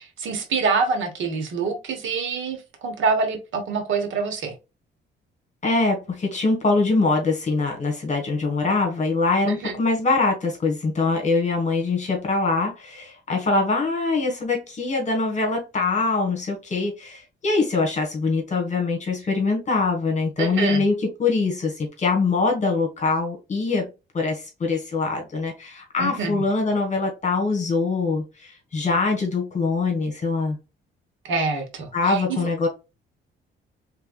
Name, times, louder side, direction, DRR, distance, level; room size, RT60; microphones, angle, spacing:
voice 1, 0.0-4.5 9.5-9.8 20.4-20.8 26.0-26.4 31.2-32.5, right 4 dB, 75° right, 1.2 m, -26 dB
voice 2, 5.6-23.9 24.1-30.6 31.9-32.7, left 3 dB, 35° left, 1.5 m, -23 dB
3.5 x 3.3 x 2.3 m
cardioid pair, 90°, 20 cm